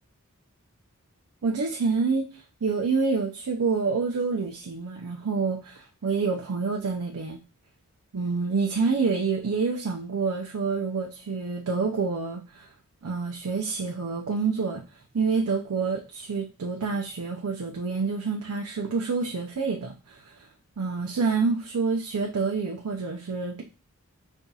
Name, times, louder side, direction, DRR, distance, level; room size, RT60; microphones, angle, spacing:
voice 1, 1.4-7.4 8.1-12.7 13.0-14.8 15.1-20.5 20.8-23.6, right 4 dB, 80° right, 0 dB, 0.5 m, -27 dB
5.3 x 2.6 x 2.3 m, 0.32 s
head